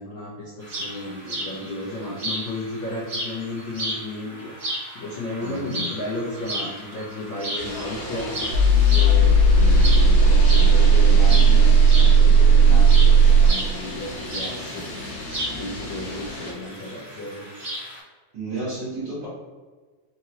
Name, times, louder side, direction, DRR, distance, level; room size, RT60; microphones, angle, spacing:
voice 1, 0.0-17.4, left 1 dB, 80° left, -7 dB, 1.1 m, -34 dB
sound 1, 0.6-18.0, right 1 dB, 40° right, 1.7 m, -34 dB
voice 2, 5.4-5.8 18.3-19.3, right 2 dB, 55° right, -11 dB, 2.1 m, -31 dB
sound 2, 7.6-16.5, left 2 dB, 60° left, 1.9 m, -34 dB
sound 3, 8.5-13.5, right 4 dB, 80° right, 1.3 m, -14 dB
5.1 x 3.0 x 2.9 m, 1.4 s
omnidirectional pair, 3.4 m